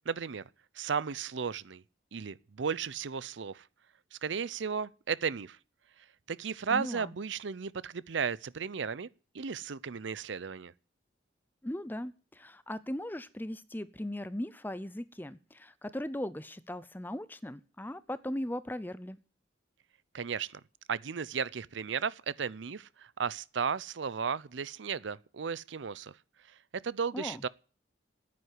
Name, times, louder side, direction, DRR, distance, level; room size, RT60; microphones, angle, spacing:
voice 1, 0.1-0.4 0.7-1.8 2.1-3.7 4.1-5.6 6.3-9.1 9.3-10.7 20.1-20.6 20.9-26.2 26.5-27.5, right 6 dB, 75° right, 0.6 m, -35 dB
voice 2, 6.7-7.1 11.6-19.2 27.1-27.4, left 1 dB, 10° left, 0.6 m, -38 dB
9.5 x 9.5 x 9.4 m
head